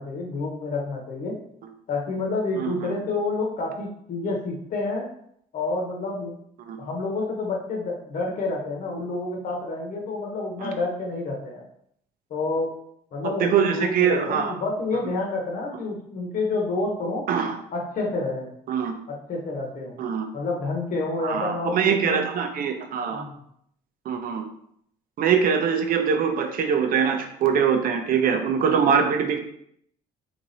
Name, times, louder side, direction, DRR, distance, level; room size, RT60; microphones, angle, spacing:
voice 1, 0.0-1.4 1.9-5.1 5.5-6.3 6.8-11.6 12.3-12.7 13.1-17.2 17.7-18.5 19.1-19.9 20.3-22.3 23.1-23.3, left 3 dB, 50° left, 0 dB, 1.1 m, -29 dB
voice 2, 13.2-14.5 17.3-17.6 18.7-18.9 20.0-20.3 21.2-23.2 24.0-24.5 25.2-29.4, right 7 dB, 55° right, 5 dB, 0.7 m, -23 dB
3.4 x 3.3 x 4.0 m, 0.70 s
cardioid pair, 110°, 17 cm